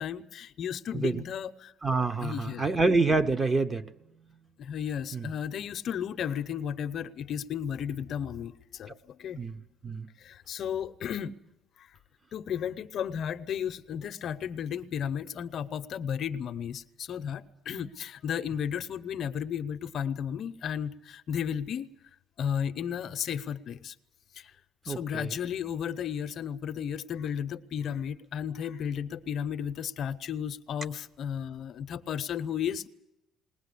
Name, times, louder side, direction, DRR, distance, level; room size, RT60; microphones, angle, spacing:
voice 1, 0.0-1.7 2.2-2.8 4.6-9.4 10.2-11.3 11.8-12.0 12.3-21.9 22.4-23.9 24.3-24.6 24.8-32.8, left 8 dB, 50° left, 11 dB, 0.7 m, -34 dB
voice 2, 1.8-3.9 5.1-5.3 9.4-9.6 9.8-10.1 24.9-25.4, right 3 dB, 20° right, 10 dB, 0.9 m, -27 dB
20.5 x 18.5 x 8.4 m, 0.92 s
cardioid pair, 140°, 0 cm